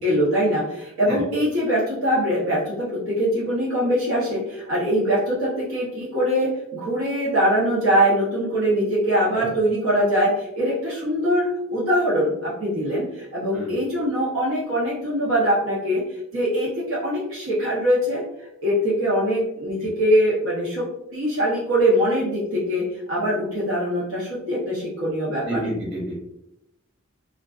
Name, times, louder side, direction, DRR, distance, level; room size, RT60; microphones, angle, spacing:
voice 1, 0.0-18.2 18.6-20.8 21.1-25.6, equal, 90° right, -7 dB, 0.7 m, -22 dB
voice 2, 25.4-26.1, right 1 dB, 60° right, -4 dB, 1.1 m, -29 dB
2.3 x 2.3 x 2.3 m, 0.84 s
head